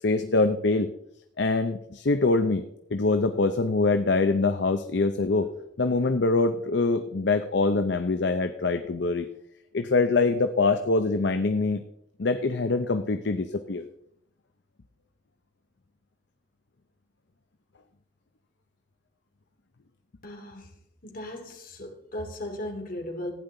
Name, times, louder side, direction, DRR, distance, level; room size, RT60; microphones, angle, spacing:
voice 1, 0.0-0.9 1.4-2.6 2.9-5.5 5.8-9.3 9.7-11.8 12.2-13.8, left 3 dB, 65° left, 8 dB, 0.7 m, -24 dB
voice 2, 20.2-20.7 21.0-23.3, left 1 dB, 50° left, 2 dB, 2.6 m, -37 dB
15.5 x 9.8 x 3.9 m, 0.73 s
head